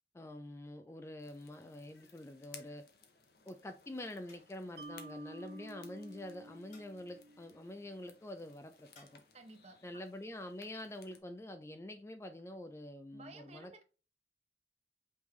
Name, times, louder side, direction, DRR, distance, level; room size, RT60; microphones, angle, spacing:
voice 1, 0.1-2.8 3.5-9.2 9.8-13.7, left 1 dB, 15° left, 0.3 m, -46 dB
sound 1, 1.2-11.2, left 6 dB, 60° left, 0.8 m, -61 dB
sound 2, 4.3-4.8 6.7-7.2 9.0-9.4, left 3 dB, 45° left, 1.5 m, -65 dB
Mallet percussion, 4.8-8.0, right 2 dB, 60° right, 1.2 m, -52 dB
voice 2, 9.3-10.0 13.1-13.8, right 2 dB, 35° right, 0.8 m, -54 dB
5.2 x 3.2 x 3.1 m
head